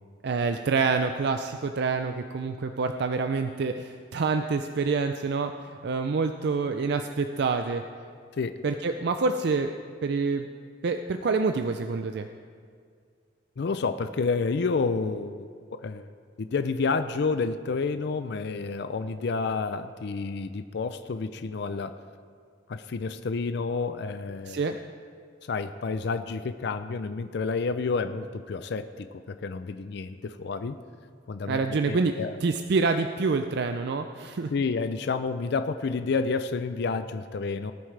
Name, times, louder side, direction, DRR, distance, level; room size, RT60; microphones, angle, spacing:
voice 1, 0.2-7.8 8.6-9.7 10.0-10.5 10.8-12.3 24.5-24.8 31.5-32.1 32.4-34.5, right 4 dB, 60° right, 7 dB, 0.4 m, -27 dB
voice 2, 13.6-15.5 15.8-16.1 16.4-22.0 22.7-24.6 25.4-30.8 31.3-32.4 34.5-37.7, left 4 dB, 60° left, 10 dB, 0.4 m, -29 dB
18.5 x 9.2 x 3.3 m, 2.1 s
head